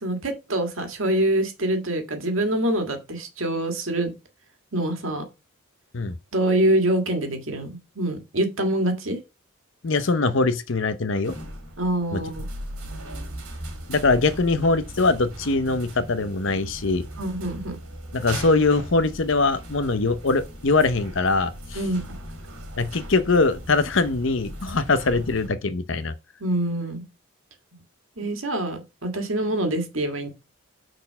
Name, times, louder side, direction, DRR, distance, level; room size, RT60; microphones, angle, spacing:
voice 1, 0.0-4.1 4.7-5.2 6.3-7.7 7.9-9.2 11.8-12.5 17.2-17.8 21.7-22.2 26.4-27.0 28.2-30.3, right 1 dB, 65° right, 1.8 m, -25 dB
voice 2, 9.8-11.3 12.1-12.2 13.9-17.1 18.1-21.8 22.8-26.1, left 3 dB, 60° left, 0.7 m, -22 dB
sound 1, 11.2-25.5, right 1 dB, 90° right, 2.4 m, -38 dB
6.3 x 4.4 x 5.6 m
head